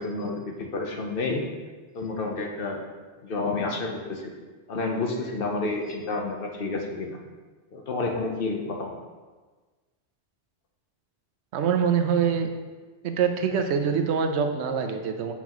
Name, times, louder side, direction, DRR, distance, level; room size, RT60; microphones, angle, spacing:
voice 1, 0.0-1.5 1.9-2.8 3.2-4.3 4.7-7.2 7.7-8.9, left 3 dB, 55° left, 1 dB, 0.9 m, -30 dB
voice 2, 11.5-12.5 13.0-15.3, right 7 dB, 75° right, 6 dB, 0.9 m, -24 dB
7.1 x 5.7 x 3.0 m, 1.4 s
omnidirectional pair, 1.1 m